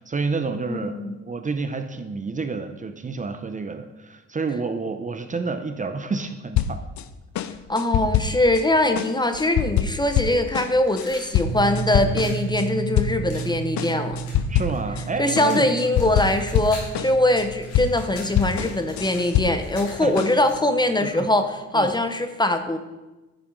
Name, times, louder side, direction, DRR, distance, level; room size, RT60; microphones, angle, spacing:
voice 1, 0.0-0.9 1.2-6.8 14.5-15.7 20.0-20.1 21.0-21.3 21.7-21.9, right 4 dB, 25° right, 7 dB, 0.7 m, -29 dB
voice 2, 0.7-1.2 7.7-14.2 15.2-22.8, left 1 dB, 15° left, 8 dB, 0.7 m, -22 dB
sound 1, 6.5-7.0 7.3-8.6 8.9-12.7 12.9-13.5 13.8-15.1 15.4-19.9 20.2-20.6, left 10 dB, 70° left, 0.6 m, -25 dB
sound 2, 10.8-12.4 13.3-15.1 15.4-17.0 17.3-20.9, left 2 dB, 85° left, 3.1 m, -43 dB
sound 3, 11.4-21.0, right 7 dB, 90° right, 0.8 m, -34 dB
10.5 x 6.0 x 4.7 m, 1.1 s
cardioid pair, 90°, 30 cm